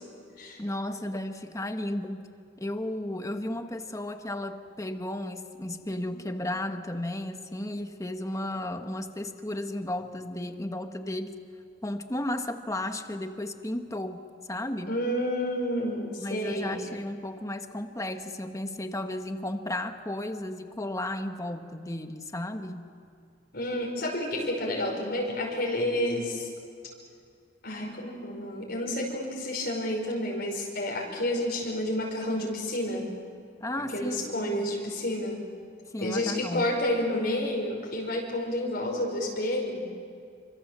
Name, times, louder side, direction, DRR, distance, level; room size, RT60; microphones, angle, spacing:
voice 1, 0.6-2.2 2.6-11.3 11.8-14.2 14.5-14.9 16.2-22.9 33.6-34.6 35.9-36.7, left 1 dB, 20° left, 7 dB, 1.4 m, -34 dB
voice 2, 14.9-16.8 23.5-26.5 27.6-33.1 33.8-35.4 36.0-39.9, left 1 dB, 60° left, -1 dB, 5.4 m, -30 dB
28.5 x 26.0 x 7.5 m, 2.3 s
head